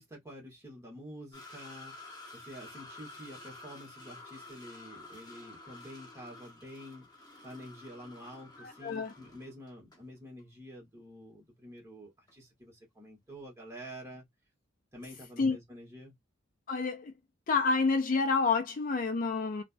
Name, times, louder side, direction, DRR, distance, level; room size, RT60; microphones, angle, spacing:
voice 1, 0.0-2.0 2.3-7.1 7.4-14.3 14.9-16.2, equal, 15° right, 1.5 m, -48 dB
sound 1, 1.3-10.0 10.4-10.5 12.3-12.4, left 2 dB, 20° left, 0.8 m, -51 dB
voice 2, 8.6-9.1 15.4-15.6 16.7-17.1 17.5-19.6, left 4 dB, 45° left, 0.4 m, -28 dB
3.2 x 2.5 x 2.2 m
head